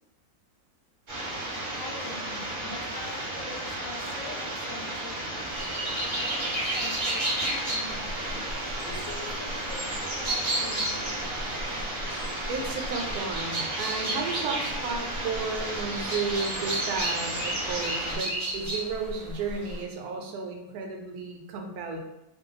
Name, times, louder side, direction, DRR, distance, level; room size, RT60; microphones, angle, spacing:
sound 1, 1.1-18.1, right 1 dB, 40° right, 0.8 m, -34 dB
voice 1, 1.8-5.2 6.2-8.4 8.8-9.8 10.2-11.4, left 3 dB, 65° left, 0 dB, 0.9 m, -44 dB
sound 2, 5.5-19.8, right 1 dB, 70° right, 0.3 m, -33 dB
voice 2, 12.5-22.0, right 4 dB, 85° right, 2 dB, 1.1 m, -33 dB
2.6 x 2.2 x 3.8 m, 0.91 s
omnidirectional pair, 1.6 m